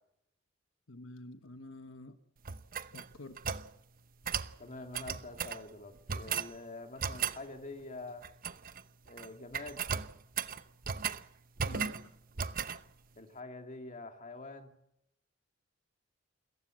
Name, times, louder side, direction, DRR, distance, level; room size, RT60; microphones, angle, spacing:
voice 1, 0.9-2.2 2.9-3.6 11.7-12.1, left 2 dB, 80° left, 8 dB, 1.3 m, -49 dB
sound 1, 2.4-3.7 4.2-4.5 4.9-5.6 6.1-6.5 7.0-7.4 8.2-8.8 9.1-9.3 9.5-11.2 11.6-12.0 12.4-12.8, right 6 dB, 45° right, 0.9 m, -36 dB
voice 2, 4.6-8.3 9.0-9.8 13.2-14.7, left 2 dB, 40° left, 5 dB, 2.4 m, -46 dB
28.5 x 15.0 x 7.7 m, 0.82 s
head